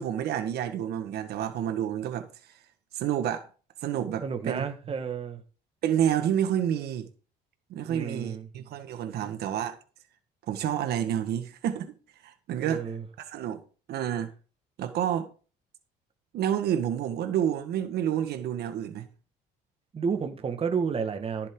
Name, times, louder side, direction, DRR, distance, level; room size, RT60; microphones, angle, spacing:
voice 1, 0.0-2.3 2.9-3.4 3.8-4.7 5.8-7.1 7.7-9.8 10.5-11.9 12.2-12.9 13.2-13.6 13.9-14.3 14.8-15.3 16.3-19.1, right 10 dB, 70° right, 1.6 m, -29 dB
voice 2, 4.2-5.4 7.9-8.5 12.6-13.0 19.9-21.5, right 6 dB, 35° right, 1.7 m, -31 dB
15.0 x 7.7 x 3.9 m
cardioid pair, 110°, 17 cm